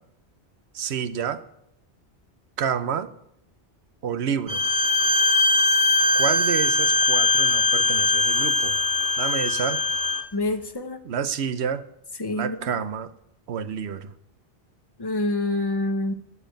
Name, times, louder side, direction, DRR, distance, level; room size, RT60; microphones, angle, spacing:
voice 1, 0.7-1.4 2.6-3.1 4.0-4.6 6.1-8.8 9.2-9.8 11.0-11.8 12.3-13.1 13.5-14.1, right 7 dB, 75° right, 12 dB, 1.0 m, -29 dB
Bowed string instrument, 4.5-10.2, left 2 dB, 20° right, 1.0 m, -21 dB
voice 2, 10.3-11.0 12.2-12.7 15.0-16.1, left 2 dB, 25° left, 7 dB, 0.9 m, -26 dB
13.0 x 4.9 x 8.9 m, 0.75 s
omnidirectional pair, 1.1 m